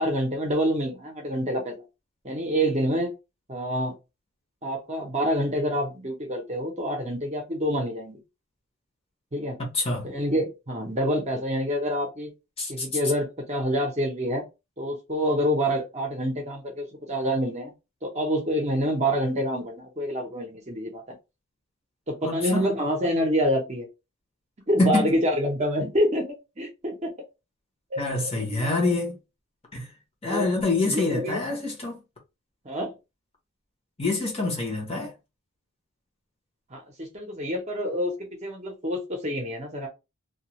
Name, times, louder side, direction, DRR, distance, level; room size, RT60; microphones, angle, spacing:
voice 1, 0.0-1.8 2.2-3.1 3.5-3.9 4.6-8.2 9.3-9.6 10.0-12.3 12.7-14.4 14.8-17.7 18.0-21.2 22.1-23.9 24.7-26.3 26.6-27.1 27.9-28.7 30.2-30.5 30.9-31.4 32.6-32.9 36.7-39.9, equal, 30° right, 0.7 m, -27 dB
voice 2, 9.6-10.1 12.6-12.9 22.2-22.7 24.8-25.1 28.0-29.2 29.7-29.9 30.2-32.0 34.0-35.1, left 2 dB, 25° left, 0.8 m, -26 dB
2.3 x 2.3 x 2.9 m
head